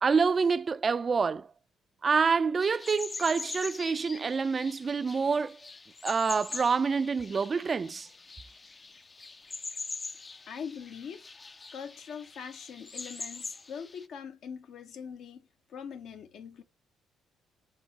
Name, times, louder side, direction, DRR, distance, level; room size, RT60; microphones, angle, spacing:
voice 1, 0.0-1.5 2.0-5.6 6.0-8.1, right 5 dB, 40° right, 0.4 m, -27 dB
sound 1, 2.6-14.1, left 3 dB, 30° left, 0.4 m, -43 dB
voice 2, 10.5-11.3 11.7-16.6, left 7 dB, 65° left, 0.7 m, -42 dB
6.6 x 2.7 x 2.8 m
hypercardioid pair, 50°, 0 cm